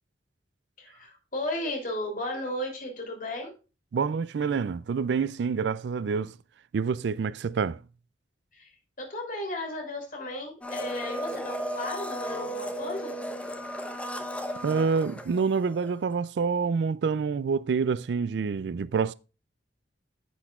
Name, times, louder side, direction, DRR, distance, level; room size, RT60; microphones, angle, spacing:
voice 1, 0.8-3.5 8.5-8.7 9.0-13.1, left 1 dB, 50° left, 3.2 m, -34 dB
voice 2, 3.9-6.3 6.7-7.8 14.6-19.1, right 5 dB, 70° right, 0.4 m, -27 dB
Domestic sounds home sounds, 10.6-15.9 16.1-16.2, equal, 5° left, 0.9 m, -35 dB
10.0 x 7.9 x 2.4 m
head